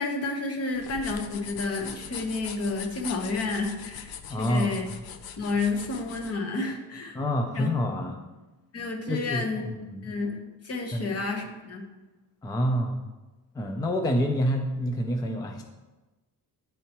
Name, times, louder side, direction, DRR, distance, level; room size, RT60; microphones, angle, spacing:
voice 1, 0.0-4.9 5.4-7.2 7.5-7.7 8.7-9.6 10.0-10.4 10.6-11.8, left 3 dB, 40° left, 2 dB, 1.1 m, -30 dB
sound 1, 0.7-6.3, left 8 dB, 65° left, 0.6 m, -41 dB
voice 2, 4.3-4.8 7.1-8.2 9.1-9.5 9.9-10.0 10.9-11.1 12.4-13.0 13.5-15.6, equal, 10° left, 5 dB, 0.4 m, -27 dB
10.0 x 4.4 x 2.9 m, 1.1 s
cardioid pair, 150°, 39 cm